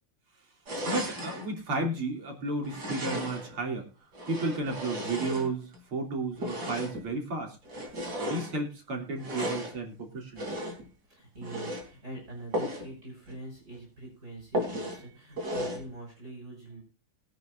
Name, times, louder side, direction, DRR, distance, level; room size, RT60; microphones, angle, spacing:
sound 1, 0.7-1.5 2.6-3.6 4.1-5.8 6.4-7.1 7.7-8.5 9.2-9.8 10.4-10.9 11.4-11.9 12.5-12.9 13.3-13.4 13.7-13.8 14.5-15.0 15.4-15.9, equal, 50° right, 4.0 m, -35 dB
voice 1, 0.9-3.9 4.3-7.6 8.2-10.6, right 2 dB, 85° right, 1 dB, 3.8 m, -33 dB
voice 2, 11.1-16.8, right 2 dB, 35° right, -1 dB, 6.4 m, -44 dB
21.5 x 9.2 x 2.6 m, 0.32 s
omnidirectional pair, 2.3 m